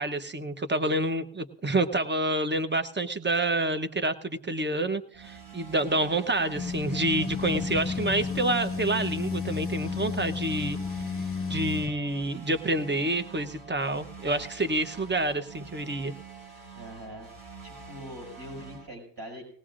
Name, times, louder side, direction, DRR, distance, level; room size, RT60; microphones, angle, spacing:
voice 1, 0.0-10.8 11.5-16.1, right 2 dB, 25° right, 9 dB, 0.9 m, -28 dB
sound 1, 5.1-18.9, right 5 dB, 90° right, 5.0 m, -46 dB
sound 2, 6.6-11.9, left 5 dB, 30° left, 0.8 m, -32 dB
voice 2, 16.8-17.3 17.6-19.4, equal, 65° right, 1 dB, 6.1 m, -42 dB
20.0 x 18.5 x 2.5 m, 0.62 s
wide cardioid pair, 80°, 46 cm